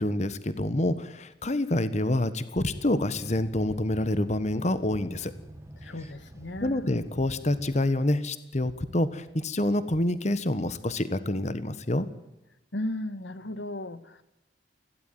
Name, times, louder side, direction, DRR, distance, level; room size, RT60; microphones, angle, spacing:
voice 1, 0.0-5.3 6.6-12.1, left 1 dB, 40° left, 14 dB, 1.4 m, -27 dB
sound 1, 2.7-7.8, right 1 dB, 15° right, 1.8 m, -47 dB
voice 2, 5.8-7.0 12.7-14.2, left 1 dB, 85° left, 13 dB, 1.9 m, -35 dB
21.0 x 17.0 x 9.3 m, 0.90 s
head